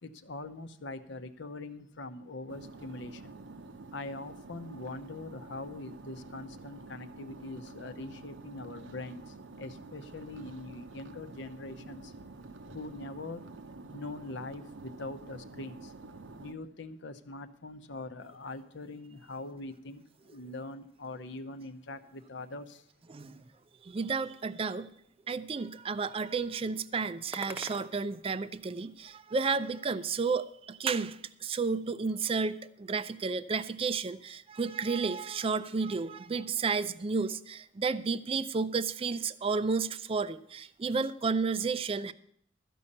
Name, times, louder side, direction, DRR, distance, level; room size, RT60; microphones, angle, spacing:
voice 1, 0.0-3.4 3.9-12.1 12.7-13.4 13.9-15.9 16.4-22.9, left 2 dB, 65° left, 0.8 m, -43 dB
sound 1, 2.5-16.5, right 3 dB, 70° right, 0.7 m, -48 dB
sound 2, 21.7-28.9, right 1 dB, 10° right, 0.8 m, -51 dB
voice 2, 23.1-23.4 23.8-24.9 25.3-42.1, right 4 dB, 30° right, 0.4 m, -32 dB
13.5 x 5.5 x 8.6 m
head